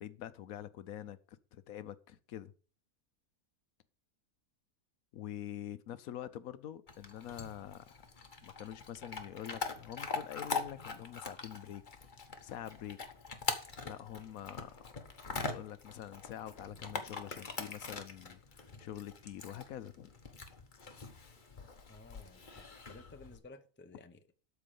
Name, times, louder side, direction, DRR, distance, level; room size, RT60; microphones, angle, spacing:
voice 1, 0.0-2.5 5.1-8.0 8.4-11.8 12.4-13.0 13.8-14.8 15.4-20.1, left 11 dB, 70° left, 1.1 m, -45 dB
Chewing mastication / Dog, 6.9-23.4, left 4 dB, 35° left, 1.3 m, -43 dB
voice 2, 21.9-24.2, left 3 dB, 10° left, 0.5 m, -55 dB
13.0 x 4.6 x 6.8 m
omnidirectional pair, 1.6 m